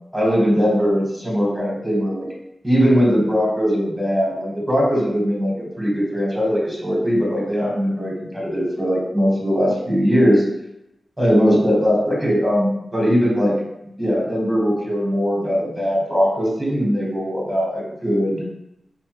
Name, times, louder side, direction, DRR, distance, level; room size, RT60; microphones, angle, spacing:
voice 1, 0.1-2.3 2.6-10.4 11.2-13.5 14.0-18.4, equal, 15° right, -3 dB, 1.2 m, -20 dB
4.9 x 2.2 x 3.0 m, 0.84 s
wide cardioid pair, 110°, 0 cm